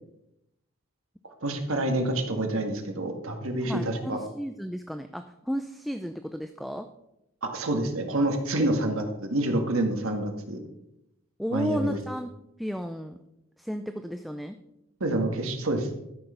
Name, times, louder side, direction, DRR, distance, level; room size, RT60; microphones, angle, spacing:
voice 1, 1.4-4.2 7.4-10.6 11.5-12.0 15.0-15.9, right 1 dB, 75° right, 4 dB, 1.8 m, -27 dB
voice 2, 3.6-6.9 8.6-8.7 11.4-12.3 12.6-13.2 13.6-14.6, equal, ahead, 7 dB, 0.4 m, -33 dB
13.0 x 6.4 x 5.6 m, 0.85 s
head